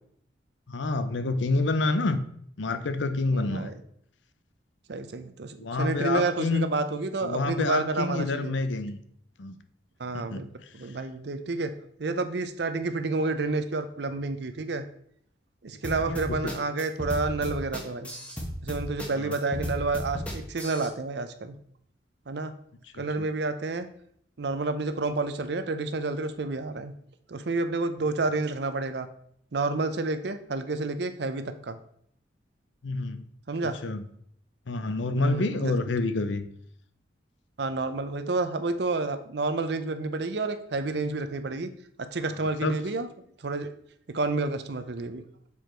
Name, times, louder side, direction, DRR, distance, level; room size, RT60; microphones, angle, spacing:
voice 1, 0.7-2.2 2.6-3.7 5.6-6.7 7.2-9.0 9.4-9.6 10.1-10.4 16.1-16.5 19.2-19.3 22.9-23.3 32.8-33.3 33.8-34.0 34.7-36.5 42.6-42.8, left 3 dB, 70° left, 10 dB, 0.6 m, -28 dB
voice 2, 3.3-3.7 4.9-8.6 10.0-10.5 10.7-11.7 12.0-14.8 15.6-18.1 18.6-21.6 22.3-22.5 23.0-23.9 24.4-26.9 27.3-29.1 29.5-31.8 33.5-33.8 35.2-35.7 37.6-41.7 42.0-43.1 43.4-43.7 44.1-45.2, right 3 dB, 60° right, 10 dB, 0.6 m, -29 dB
sound 1, 15.8-20.9, equal, 5° left, 1.0 m, -34 dB
7.0 x 4.7 x 4.4 m, 0.68 s
head